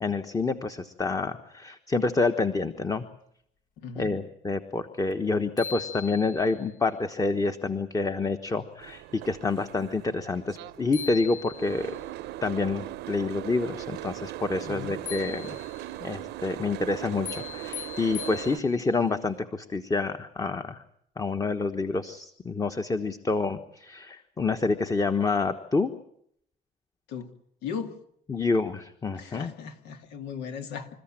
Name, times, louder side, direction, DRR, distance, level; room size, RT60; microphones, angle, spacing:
voice 1, 0.0-3.1 3.9-11.9 12.4-15.6 16.0-20.8 21.2-25.9 28.3-29.5, left 3 dB, 20° left, 8 dB, 1.2 m, -28 dB
voice 2, 3.8-4.2 14.6-15.0 27.1-27.3 27.6-27.9 29.2-30.9, left 6 dB, 85° left, 6 dB, 2.5 m, -37 dB
sound 1, 5.1-5.2 5.6-6.7 10.6-10.7 10.9-12.0 15.1-16.0 17.2-19.0, left 8 dB, 55° left, 1.2 m, -40 dB
Boat Water vehicle, 8.8-18.6, right 15 dB, 80° right, 0.8 m, -39 dB
27.5 x 14.0 x 8.9 m, 0.71 s
cardioid pair, 110°, 17 cm